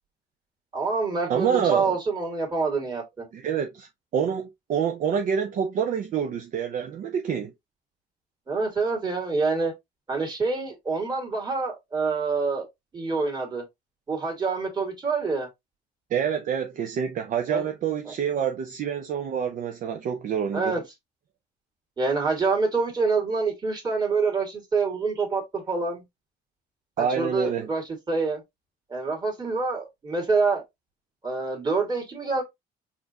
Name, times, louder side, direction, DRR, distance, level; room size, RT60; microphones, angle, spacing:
voice 1, 0.7-3.3 8.5-9.7 10.1-12.7 12.9-13.6 14.1-15.5 17.5-17.7 18.1-18.2 20.5-20.8 22.0-26.0 27.0-28.4 28.9-30.6 31.2-32.4, right 4 dB, 25° right, 1.9 m, -26 dB
voice 2, 1.3-2.0 3.3-7.5 16.1-20.8 27.0-27.7, right 8 dB, 50° right, 0.6 m, -27 dB
4.2 x 2.6 x 2.8 m
cardioid pair, 110°, 17 cm